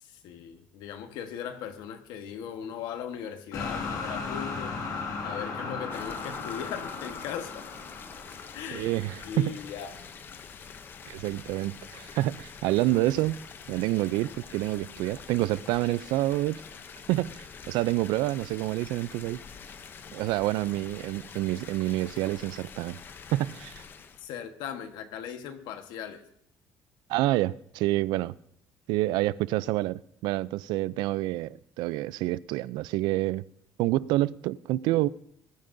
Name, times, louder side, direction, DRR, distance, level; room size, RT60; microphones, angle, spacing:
voice 1, 0.0-4.9 5.2-7.7 8.5-10.0 24.2-26.2, left 8 dB, 70° left, 1.3 m, -38 dB
sound 1, 3.5-9.6, left 4 dB, 50° left, 2.1 m, -36 dB
sound 2, 5.9-24.3, left 6 dB, 30° left, 0.6 m, -46 dB
voice 2, 8.7-9.6 11.1-16.6 17.1-17.3 17.7-19.4 20.1-23.0 23.3-23.8 27.1-28.3 28.9-33.4 33.8-35.1, right 17 dB, 80° right, 0.4 m, -28 dB
20.5 x 13.0 x 2.6 m
cardioid pair, 175°, 7 cm